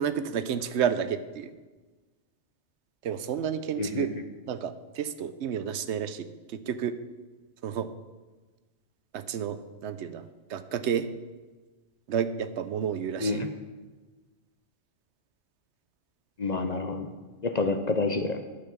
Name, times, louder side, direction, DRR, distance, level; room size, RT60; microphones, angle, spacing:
voice 1, 0.0-1.5 3.0-4.1 4.5-6.3 6.5-7.0 7.6-7.9 9.1-10.2 10.5-11.1 12.1-13.4 17.6-17.7, right 8 dB, 75° right, 12 dB, 0.9 m, -30 dB
voice 2, 3.8-4.1 13.2-13.5 16.4-17.1 17.4-18.4, left 3 dB, 45° left, 7 dB, 0.6 m, -28 dB
9.9 x 5.8 x 7.1 m, 1.3 s
omnidirectional pair, 1.2 m